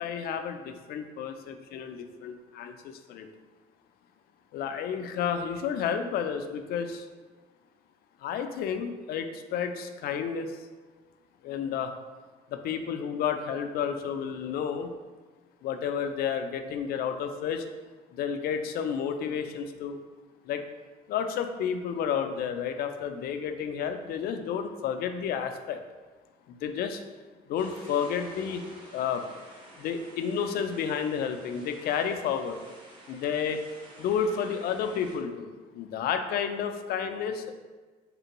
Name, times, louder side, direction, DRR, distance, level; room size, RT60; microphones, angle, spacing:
voice 1, 0.0-3.3 4.5-7.1 8.2-10.5 11.4-11.9 12.5-14.9 15.6-17.6 18.1-20.0 20.5-20.6 21.1-25.8 26.5-27.0 27.5-28.6 28.9-29.2 29.8-32.6 33.1-33.6 34.0-35.5 35.7-37.5, left 7 dB, 65° left, 7 dB, 0.4 m, -31 dB
sound 1, 27.6-35.2, right 1 dB, 25° right, 1.2 m, -50 dB
3.7 x 3.3 x 2.9 m, 1.3 s
cardioid pair, 110°, 17 cm